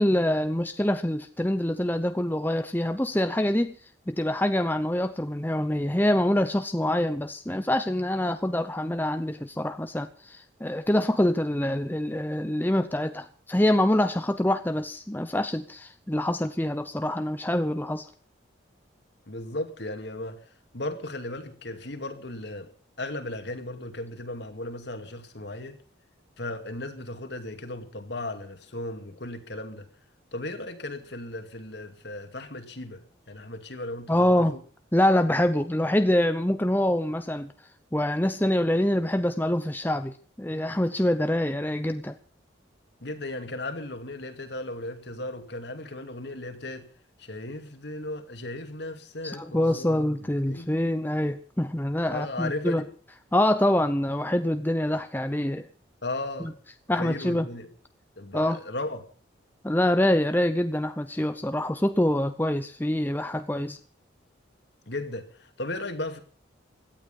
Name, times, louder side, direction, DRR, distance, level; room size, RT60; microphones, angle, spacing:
voice 1, 0.0-3.7 4.1-18.1 34.1-34.6 34.9-37.5 37.9-42.2 49.2-52.8 53.3-55.7 56.4-56.5 56.9-57.5 58.3-58.6 59.6-63.8, left 1 dB, 10° left, 0.7 m, -25 dB
voice 2, 19.3-22.7 23.0-25.8 26.4-29.9 30.3-34.6 43.0-46.9 47.2-50.7 52.1-52.9 56.0-56.5 57.0-57.7 58.2-59.1 64.9-66.2, left 2 dB, 60° left, 2.4 m, -36 dB
17.0 x 12.5 x 5.6 m
head